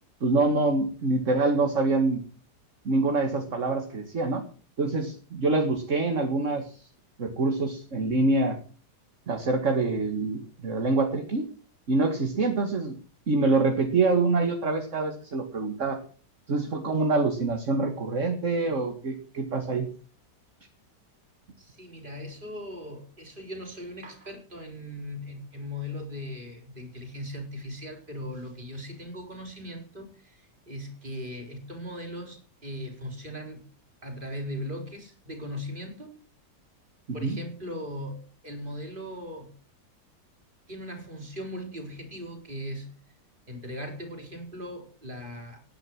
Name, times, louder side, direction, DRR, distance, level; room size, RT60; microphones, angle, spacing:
voice 1, 0.2-2.2 2.9-4.4 4.8-6.9 7.2-8.6 9.3-11.4 11.9-13.0 13.3-16.0 16.5-19.9 37.2-37.4, right 3 dB, 45° right, 5 dB, 2.2 m, -25 dB
voice 2, 21.6-33.6 34.0-36.2 37.1-39.5 40.7-42.9 43.5-45.6, left 1 dB, 30° right, 4 dB, 4.2 m, -39 dB
18.0 x 10.5 x 6.0 m, 0.41 s
omnidirectional pair, 1.8 m